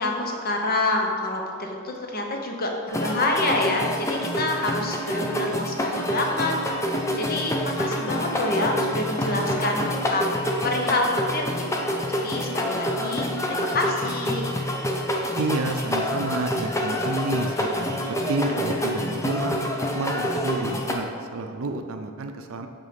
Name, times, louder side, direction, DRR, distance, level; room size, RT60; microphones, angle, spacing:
voice 1, 0.0-10.4 10.6-14.5, left 2 dB, 45° left, 1 dB, 0.9 m, -27 dB
sound 1, 2.9-20.9, left 1 dB, 15° left, 0.5 m, -27 dB
voice 2, 15.4-18.0 18.3-19.6 19.9-22.7, right 3 dB, 70° right, 6 dB, 0.5 m, -30 dB
7.6 x 3.7 x 5.2 m, 2.3 s
head